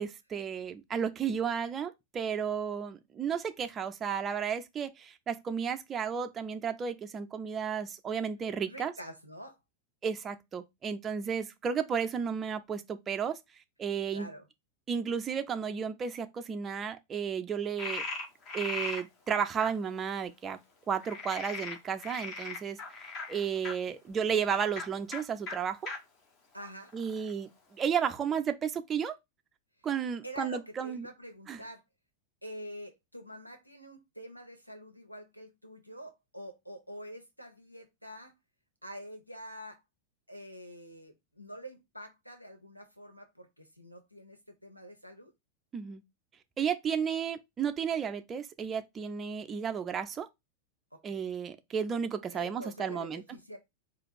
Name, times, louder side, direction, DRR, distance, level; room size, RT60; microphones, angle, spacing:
voice 1, 0.0-8.9 10.0-13.4 13.8-14.3 14.9-18.0 18.5-20.6 20.9-22.8 23.3-25.9 26.9-29.1 29.8-31.1 31.5-31.6 45.7-46.0 46.6-50.3 51.0-53.2, right 7 dB, 25° right, 0.5 m, -33 dB
voice 2, 8.7-9.6 14.1-14.5 26.5-26.9 29.8-29.9 30.2-31.8 32.4-38.4 38.8-39.8 40.3-45.3 50.9-51.2 52.3-53.6, equal, 90° right, 0.7 m, -46 dB
Frog, 17.8-19.0 19.6-19.7 21.0-23.7 24.7-24.9 25.1-25.2 25.5-25.6 25.9-26.0 26.6-27.3, left 3 dB, 35° left, 1.3 m, -38 dB
4.0 x 2.5 x 4.6 m
figure-of-eight pair, 90°, 0 cm